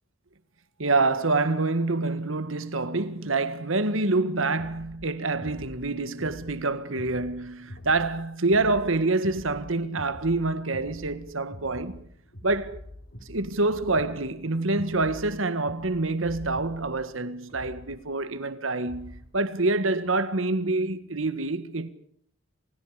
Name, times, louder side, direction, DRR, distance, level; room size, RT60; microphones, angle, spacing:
voice 1, 0.8-12.0 12.4-12.8 13.3-21.9, right 3 dB, 85° right, 1.8 m, -26 dB
sound 1, 4.6-19.3, left 1 dB, 65° left, 5.1 m, -46 dB
29.0 x 27.0 x 5.1 m
head